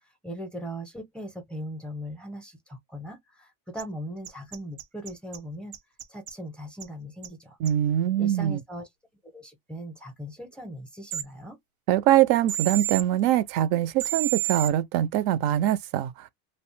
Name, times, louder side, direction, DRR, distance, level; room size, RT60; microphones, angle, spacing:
voice 1, 0.2-5.7 6.1-7.6 8.2-8.9 9.2-11.6, equal, 5° left, 0.5 m, -39 dB
sound 1, 3.8-3.9 4.2-5.4 5.7-6.3 6.8-6.9 7.2-7.3 7.7-7.8 11.1-11.2 12.5-13.0 14.0-14.7, right 15 dB, 90° right, 0.8 m, -30 dB
voice 2, 7.6-8.6 11.9-16.3, right 12 dB, 65° right, 0.5 m, -23 dB
2.6 x 2.0 x 3.1 m
cardioid pair, 140°, 38 cm